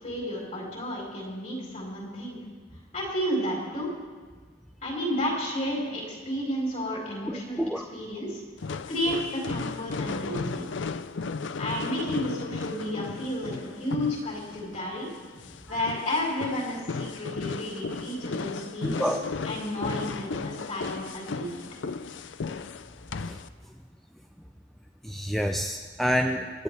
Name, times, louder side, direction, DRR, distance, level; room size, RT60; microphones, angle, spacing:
voice 1, 0.0-2.4 2.9-3.9 4.8-7.6 7.9-8.4 8.9-10.7 11.6-15.1 15.7-19.2 19.4-21.6, equal, 40° left, -4 dB, 4.7 m, -32 dB
voice 2, 7.3-7.8 18.8-19.2 23.3-23.4 25.0-26.6, equal, ahead, 3 dB, 0.5 m, -28 dB
sound 1, 8.6-23.5, left 4 dB, 80° left, 0.5 m, -35 dB
28.0 x 10.5 x 3.5 m, 1.5 s
head